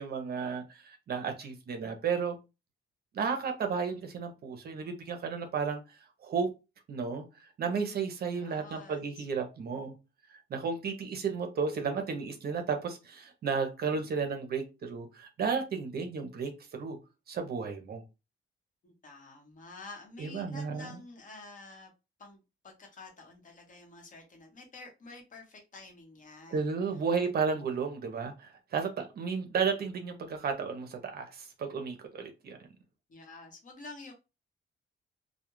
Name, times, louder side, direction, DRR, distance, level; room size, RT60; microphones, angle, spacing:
voice 1, 0.0-2.3 3.1-6.5 6.9-7.3 7.6-9.9 10.5-17.0 17.3-18.0 20.2-20.9 26.5-32.6, right 5 dB, 55° right, 0.6 m, -33 dB
voice 2, 8.3-9.3 18.8-21.9 22.2-22.4 22.6-26.7 27.4-27.6 33.1-34.1, left 3 dB, 45° left, 0.9 m, -49 dB
2.2 x 2.1 x 3.0 m
cardioid pair, 120°, 19 cm